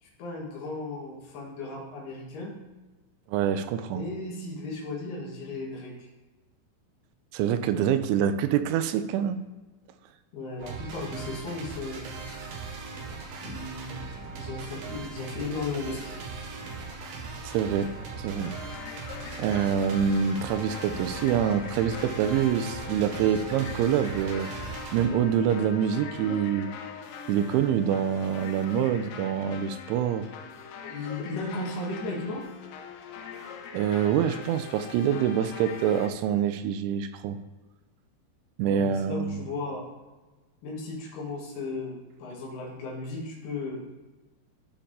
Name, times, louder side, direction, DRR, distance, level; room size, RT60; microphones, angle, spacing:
voice 1, 0.0-2.5 3.9-6.1 10.3-12.1 13.4-16.2 30.8-32.4 38.6-39.9 40.6-43.8, left 3 dB, 65° left, -3 dB, 3.3 m, -35 dB
voice 2, 3.3-4.0 7.3-9.4 17.4-18.5 19.4-26.7 27.3-30.3 33.7-37.4 38.6-39.4, right 8 dB, 90° right, 11 dB, 3.0 m, -26 dB
sound 1, 10.6-25.1, right 4 dB, 70° right, 2.3 m, -39 dB
sound 2, 17.8-36.1, left 6 dB, 85° left, 2.4 m, -42 dB
14.0 x 4.7 x 3.7 m, 1.2 s
omnidirectional pair, 5.3 m